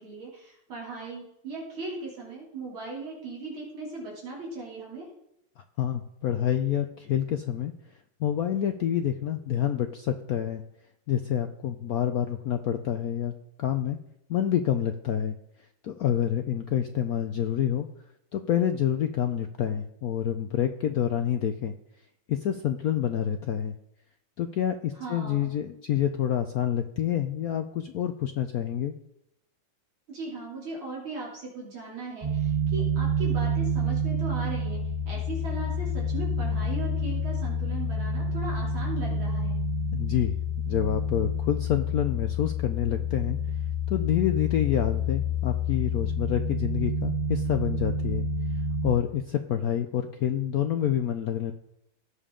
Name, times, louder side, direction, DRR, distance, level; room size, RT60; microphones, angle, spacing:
voice 1, 0.0-5.0 25.0-25.5 30.1-39.6, right 3 dB, 70° right, -4 dB, 3.9 m, -38 dB
voice 2, 5.6-7.7 8.2-10.6 11.1-13.3 13.6-14.0 14.3-15.3 15.8-17.9 18.3-21.7 22.3-23.7 24.4-28.9 39.9-40.4 40.7-43.4 43.9-48.3 48.8-51.5, left 10 dB, 85° left, 7 dB, 0.8 m, -27 dB
sound 1, 32.2-48.9, left 1 dB, 15° right, 4.2 m, -28 dB
17.5 x 7.0 x 3.7 m, 0.79 s
omnidirectional pair, 2.3 m